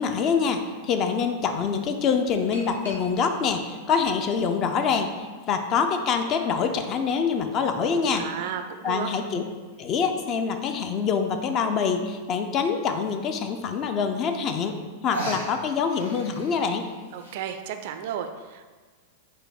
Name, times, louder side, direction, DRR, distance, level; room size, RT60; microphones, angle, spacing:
voice 1, 0.0-8.3 8.8-9.4 9.8-16.9, left 6 dB, 35° left, 6 dB, 0.4 m, -25 dB
sound 1, 2.5-3.4 4.1-5.1 5.7-5.8 7.0-8.1 9.7-9.8 10.3-10.4 10.6-10.7 11.0-11.4 12.4-12.5 13.0-13.1 14.2-14.3 14.5-14.8 15.1-17.4, right 2 dB, 75° left, 1.0 m, -39 dB
voice 2, 8.1-9.1 17.1-18.7, right 9 dB, 50° right, 8 dB, 0.3 m, -33 dB
4.1 x 2.5 x 4.7 m, 1.4 s
figure-of-eight pair, 90°, 0 cm